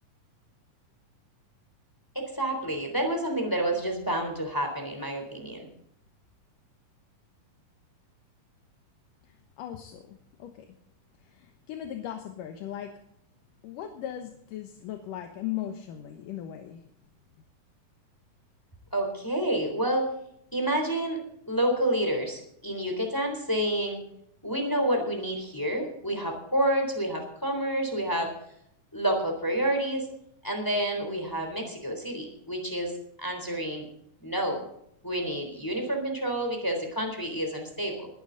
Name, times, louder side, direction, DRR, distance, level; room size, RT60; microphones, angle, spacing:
voice 1, 2.1-5.7 18.9-20.1 20.5-21.2 21.5-24.0 24.4-28.3 28.9-30.1 30.4-32.9 33.2-33.9 34.2-34.6 35.0-38.1, right 1 dB, 5° left, 3 dB, 3.3 m, -29 dB
voice 2, 9.2-10.7 11.2-13.0 13.6-16.8, left 11 dB, 75° left, 6 dB, 2.7 m, -38 dB
20.5 x 11.5 x 4.0 m, 0.73 s
omnidirectional pair, 4.0 m